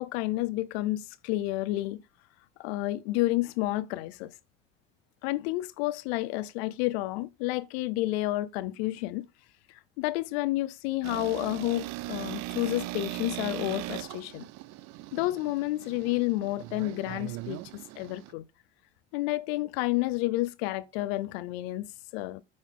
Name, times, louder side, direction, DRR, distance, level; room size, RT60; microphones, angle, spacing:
voice 1, 0.0-2.0 2.6-4.3 5.2-9.2 10.0-14.5 15.1-17.6 18.0-18.4 19.1-22.4, left 18 dB, 80° left, 0.6 m, -30 dB
sound 1, 11.0-18.3, right 18 dB, 60° right, 0.5 m, -39 dB
8.6 x 4.0 x 3.6 m
supercardioid pair, 85°, 30 cm